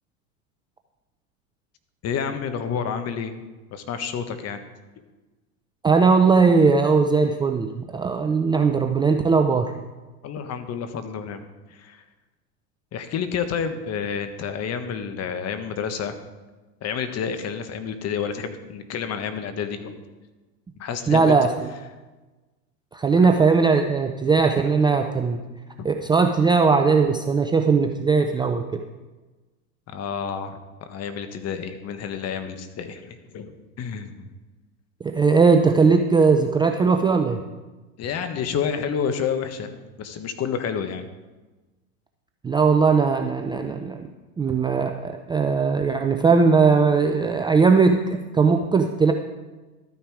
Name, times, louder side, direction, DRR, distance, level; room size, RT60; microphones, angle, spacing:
voice 1, 2.0-3.3 3.7-4.6 10.2-11.4 11.7-12.0 12.9-16.1 16.8-20.0 20.8-21.4 25.8-25.9 29.9-34.3 38.0-41.1, left 7 dB, 35° left, 9 dB, 1.4 m, -29 dB
voice 2, 5.8-9.7 21.1-21.5 22.9-25.4 25.8-28.8 35.0-37.4 42.4-44.1 44.4-49.1, right 4 dB, 10° right, 5 dB, 0.5 m, -19 dB
13.0 x 9.4 x 4.9 m, 1.2 s
hypercardioid pair, 105°, 43 cm